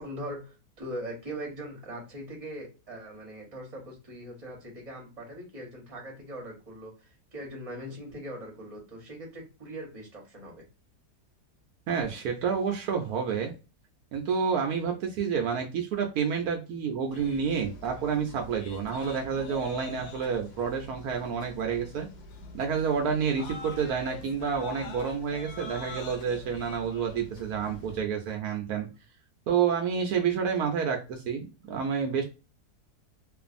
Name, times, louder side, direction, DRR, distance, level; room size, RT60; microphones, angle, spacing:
voice 1, 0.0-10.6, right 1 dB, 25° right, 0 dB, 0.9 m, -41 dB
voice 2, 11.9-13.5 14.1-22.1 22.5-28.9 29.5-32.2, right 6 dB, 75° right, 3 dB, 1.0 m, -29 dB
sound 1, 17.1-28.0, left 4 dB, 90° left, 1.2 m, -44 dB
2.5 x 2.4 x 2.5 m, 0.30 s
omnidirectional pair, 1.7 m